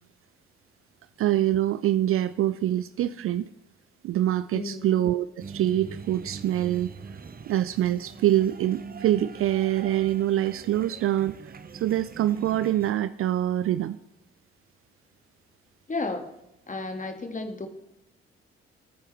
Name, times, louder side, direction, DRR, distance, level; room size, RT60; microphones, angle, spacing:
voice 1, 1.2-3.5 4.0-6.9 7.5-14.0, right 13 dB, 40° right, 15 dB, 0.5 m, -25 dB
voice 2, 4.5-4.9 15.9-16.3 16.7-17.7, left 3 dB, 25° left, 6 dB, 1.9 m, -33 dB
sound 1, 5.4-12.9, right 5 dB, 25° right, 1.0 m, -42 dB
24.5 x 9.1 x 3.3 m, 0.88 s
figure-of-eight pair, 40°, 33 cm